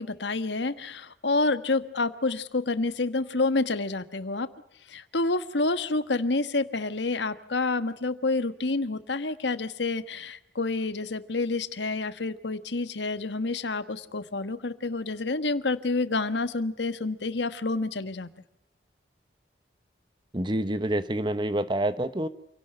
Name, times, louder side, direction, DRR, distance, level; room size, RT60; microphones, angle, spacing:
voice 1, 0.0-4.5 4.9-18.3, left 3 dB, 85° left, 12 dB, 1.4 m, -28 dB
voice 2, 20.3-22.3, right 1 dB, 25° right, 13 dB, 1.1 m, -27 dB
28.0 x 17.5 x 7.8 m, 0.78 s
head